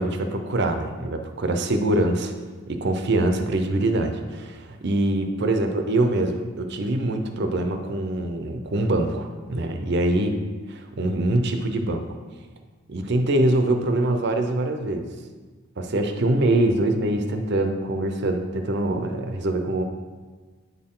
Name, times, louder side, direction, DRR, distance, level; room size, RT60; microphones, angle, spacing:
voice 1, 0.0-2.3 2.7-10.4 10.7-12.0 12.9-15.1 15.8-19.8, right 1 dB, 55° right, 6 dB, 0.6 m, -24 dB
8.2 x 4.4 x 3.7 m, 1.4 s
head